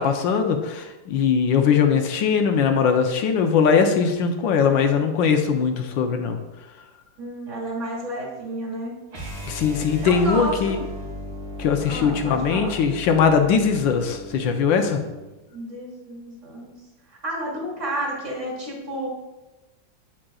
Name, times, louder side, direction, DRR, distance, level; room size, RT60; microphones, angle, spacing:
voice 1, 0.0-6.4 9.5-10.8 11.6-15.0, left 6 dB, 80° left, 5 dB, 1.4 m, -20 dB
voice 2, 7.2-9.0 10.0-10.6 11.8-12.7 15.5-16.7 17.1-19.1, right 1 dB, 40° right, -5 dB, 2.7 m, -31 dB
sound 1, 9.1-15.3, equal, 85° right, 3.0 m, -36 dB
8.4 x 7.5 x 2.3 m, 1.1 s
omnidirectional pair, 2.1 m